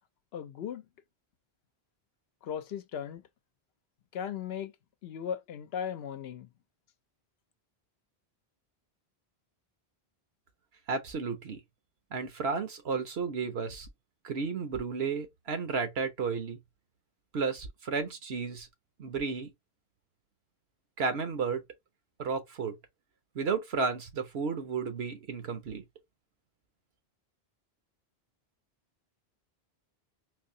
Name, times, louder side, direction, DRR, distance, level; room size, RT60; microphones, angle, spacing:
voice 1, 0.3-0.8 2.4-3.2 4.1-4.7 5.0-6.5, left 8 dB, 75° left, 0.8 m, -37 dB
voice 2, 10.9-11.6 12.1-13.9 14.2-16.6 17.3-18.7 19.0-19.5 21.0-21.6 22.2-22.7 23.3-25.8, right 5 dB, 75° right, 1.2 m, -32 dB
4.1 x 2.7 x 2.6 m
omnidirectional pair, 1.1 m